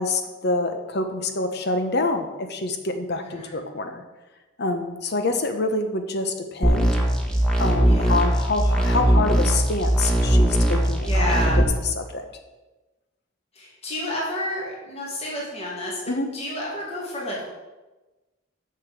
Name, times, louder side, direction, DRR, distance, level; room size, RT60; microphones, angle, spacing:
voice 1, 0.0-4.0 4.6-6.9 7.6-11.7 11.9-12.2 16.1-16.3, left 2 dB, 55° left, 7 dB, 1.0 m, -26 dB
voice 2, 3.1-3.6 7.8-8.3 11.0-11.6 13.5-16.0 16.3-17.4, left 1 dB, 30° left, -4 dB, 2.3 m, -30 dB
sound 1, 6.6-11.6, right 1 dB, 5° left, 1.3 m, -20 dB
6.9 x 6.5 x 6.9 m, 1.1 s
head